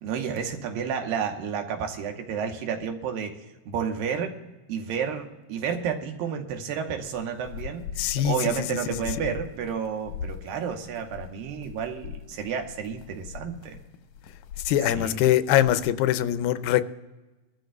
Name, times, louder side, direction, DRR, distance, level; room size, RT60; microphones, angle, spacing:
voice 1, 0.0-4.4 4.7-7.9 8.2-13.8 14.9-15.2, right 7 dB, 80° right, 5 dB, 2.7 m, -31 dB
sound 1, 7.0-15.9, left 7 dB, 75° left, 1.8 m, -41 dB
voice 2, 8.0-8.7 9.2-9.3 14.7-16.8, left 12 dB, 90° left, 13 dB, 2.3 m, -23 dB
23.5 x 13.0 x 2.3 m, 1.2 s
omnidirectional pair, 4.0 m